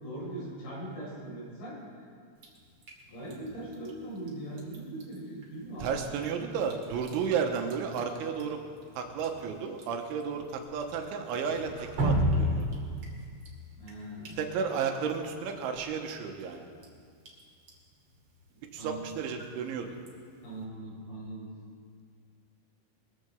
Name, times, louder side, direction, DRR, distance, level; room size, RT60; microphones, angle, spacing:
voice 1, 0.0-1.8 3.1-5.9 13.7-14.4 18.8-19.0 20.4-21.5, right 1 dB, 65° left, -6 dB, 7.1 m, -40 dB
Drip, 2.4-20.6, equal, 40° right, 2.1 m, -38 dB
voice 2, 5.8-8.6 9.0-12.7 14.4-16.7 18.7-20.0, right 6 dB, 85° right, 4 dB, 3.5 m, -33 dB
22.0 x 14.5 x 3.5 m, 2.1 s
omnidirectional pair, 5.4 m